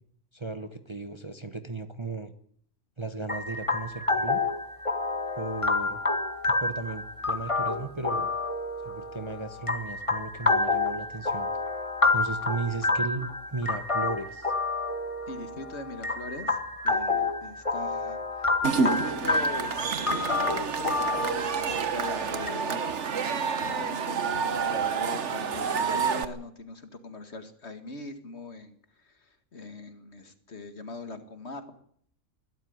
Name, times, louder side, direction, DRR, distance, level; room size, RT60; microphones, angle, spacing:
voice 1, 0.3-2.3 3.0-4.4 5.4-6.0 6.5-8.3 8.8-11.7 12.1-14.5, right 3 dB, 25° right, 9 dB, 1.1 m, -36 dB
sound 1, 3.3-22.5, left 3 dB, 25° left, 1.8 m, -29 dB
voice 2, 15.3-16.6 16.8-18.2 18.6-22.9 23.6-28.8 29.1-31.6, left 2 dB, 55° left, 9 dB, 2.2 m, -41 dB
Cheering / Crowd, 18.6-26.3, right 5 dB, 60° right, 1.4 m, -29 dB
21.5 x 13.0 x 9.5 m, 0.63 s
omnidirectional pair, 1.4 m